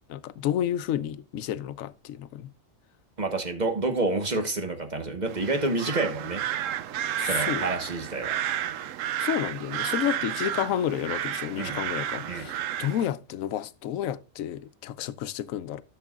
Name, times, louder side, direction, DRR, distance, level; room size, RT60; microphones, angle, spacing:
voice 1, 0.1-2.5 7.2-7.7 9.2-15.8, left 11 dB, 85° left, 1.0 m, -31 dB
voice 2, 3.2-6.4 7.2-8.4 11.5-11.8 12.2-12.5, right 2 dB, 35° right, 1.2 m, -28 dB
sound 1, 5.3-13.1, right 11 dB, 75° right, 0.9 m, -31 dB
13.0 x 6.7 x 2.3 m
omnidirectional pair, 1.4 m